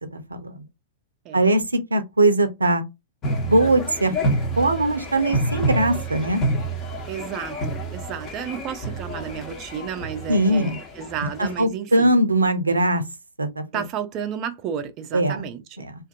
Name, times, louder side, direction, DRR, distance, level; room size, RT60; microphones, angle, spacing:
voice 1, 0.1-0.6 1.3-2.8 3.3-4.3 4.6-6.4 10.3-10.8 11.6-13.0 13.4-13.8 15.1-15.4 15.8-15.9, right 1 dB, 80° right, 0.5 m, -21 dB
sound 1, 3.2-11.6, right 1 dB, 25° left, 1.0 m, -28 dB
voice 2, 7.1-10.7 11.0-12.1 13.7-15.9, right 8 dB, 35° right, 0.4 m, -32 dB
2.5 x 2.4 x 2.4 m
figure-of-eight pair, 100°, 0 cm